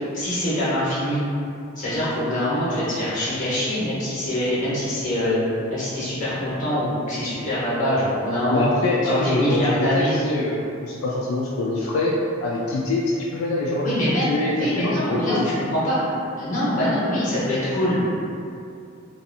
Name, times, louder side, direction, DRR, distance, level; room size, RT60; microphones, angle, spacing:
voice 1, 0.1-1.2 1.8-5.4 5.7-8.7 9.0-10.2 13.8-16.0 16.4-18.2, left 1 dB, 40° left, -11 dB, 1.1 m, -24 dB
voice 2, 8.5-12.2 12.4-15.5, left 2 dB, 85° left, -3 dB, 0.3 m, -24 dB
2.7 x 2.3 x 2.6 m, 2.5 s
head